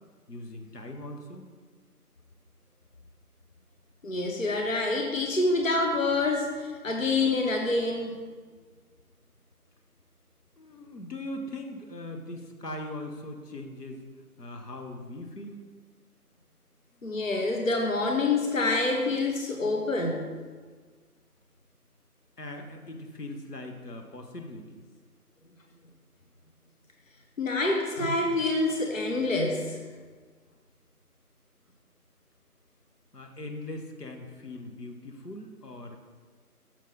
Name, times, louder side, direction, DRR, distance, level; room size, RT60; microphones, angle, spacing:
voice 1, 0.3-1.5 10.6-14.0 14.4-15.6 22.4-24.8 33.1-36.0, left 1 dB, 85° left, 3 dB, 1.1 m, -40 dB
voice 2, 4.0-8.2 17.0-20.3 27.4-29.8, left 2 dB, 55° left, 2 dB, 0.8 m, -27 dB
6.2 x 4.2 x 5.4 m, 1.5 s
figure-of-eight pair, 175°, 47 cm